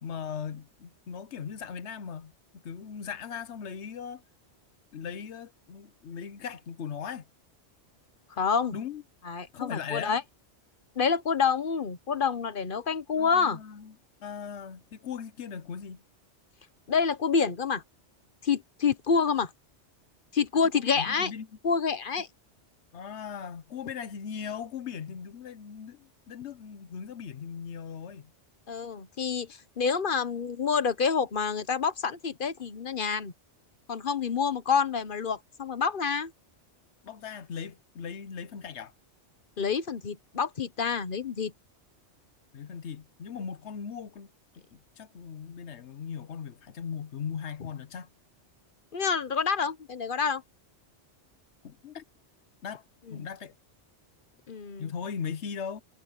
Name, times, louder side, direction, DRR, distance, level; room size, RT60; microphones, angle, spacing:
voice 1, 0.0-4.2 4.9-7.3 8.7-9.0 9.5-10.1 13.2-13.9 14.2-16.0 20.7-21.5 22.9-28.3 37.0-38.9 42.5-44.3 44.5-48.1 51.6-52.0 52.6-52.8 53.1-53.5 54.8-55.8, left 7 dB, 75° left, 1.2 m, -39 dB
voice 2, 8.3-8.8 9.2-10.2 11.0-13.6 16.9-17.8 18.4-19.5 20.3-21.3 21.6-22.3 28.7-33.3 33.9-36.3 39.6-41.5 48.9-50.4 53.1-53.3 54.5-54.9, left 6 dB, 50° left, 1.1 m, -28 dB
omnidirectional pair, 1.2 m